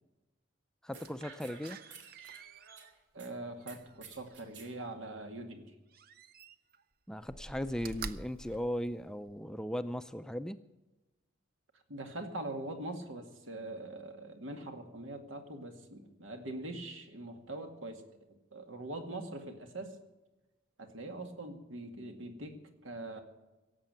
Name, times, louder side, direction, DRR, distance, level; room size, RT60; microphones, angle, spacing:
voice 1, 0.8-1.8 7.1-10.6, equal, 5° left, 11 dB, 0.4 m, -37 dB
Slam, 0.9-4.8 5.9-6.8 7.2-9.5 10.0-10.1, right 4 dB, 50° right, 0.6 m, -49 dB
sound 1, 0.9-3.3 3.7-4.7, right 5 dB, 70° right, 2.3 m, -53 dB
voice 2, 3.1-5.7 11.9-18.0 18.3-20.0 20.8-23.2, right 2 dB, 85° right, 5 dB, 2.2 m, -43 dB
17.5 x 7.6 x 8.9 m, 1.1 s
head